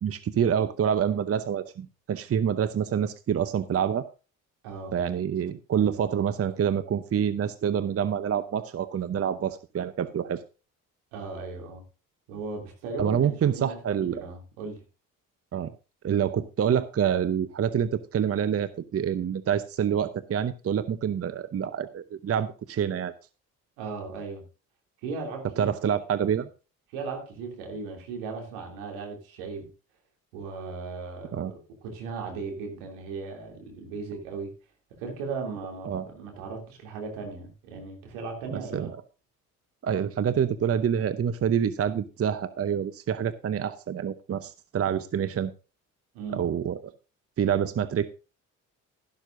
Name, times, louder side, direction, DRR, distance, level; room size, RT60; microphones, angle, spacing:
voice 1, 0.0-4.0 4.9-10.4 13.0-14.2 15.5-15.7 16.0-23.1 25.6-26.5 31.3-31.5 35.8-36.1 38.5-39.0 39.8-45.5 46.3-46.8 47.4-48.1, right 8 dB, 35° right, 14 dB, 0.8 m, -27 dB
voice 2, 4.6-5.0 11.1-11.8 12.3-13.8 14.1-14.8 23.8-24.4 25.0-26.3 26.9-29.7 30.3-34.5 35.0-38.9 46.1-46.4, right 4 dB, 75° right, 2 dB, 3.0 m, -37 dB
12.5 x 12.0 x 2.6 m, 0.32 s
hypercardioid pair, 55°, 42 cm